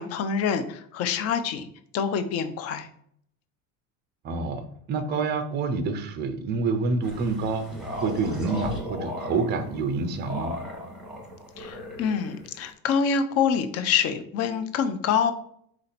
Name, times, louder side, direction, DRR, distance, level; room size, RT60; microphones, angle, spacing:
voice 1, 0.0-1.7 1.9-2.9 11.6-15.3, left 7 dB, 35° left, 10 dB, 0.5 m, -26 dB
voice 2, 4.2-7.7 7.9-10.6, right 4 dB, 25° right, 8 dB, 0.4 m, -27 dB
sound 1, 7.0-12.7, left 1 dB, ahead, 1.0 m, -36 dB
4.3 x 2.7 x 4.0 m, 0.67 s
supercardioid pair, 125°, 43 cm